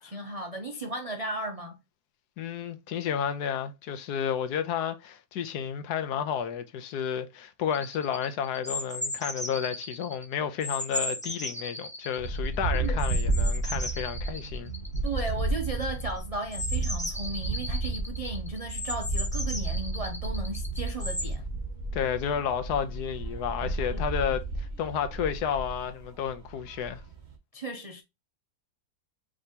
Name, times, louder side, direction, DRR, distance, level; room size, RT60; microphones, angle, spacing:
voice 1, 0.0-1.8 12.8-13.0 15.0-21.5 23.9-24.2 27.5-28.0, right 2 dB, 50° right, 0.4 m, -35 dB
voice 2, 2.4-14.7 21.9-27.0, left 8 dB, 85° left, 1.3 m, -31 dB
sound 1, 7.7-10.3 10.6-21.3, left 1 dB, 10° left, 0.5 m, -36 dB
sound 2, 12.2-27.3, right 2 dB, 30° right, 1.1 m, -32 dB
4.9 x 3.3 x 2.7 m
omnidirectional pair, 1.7 m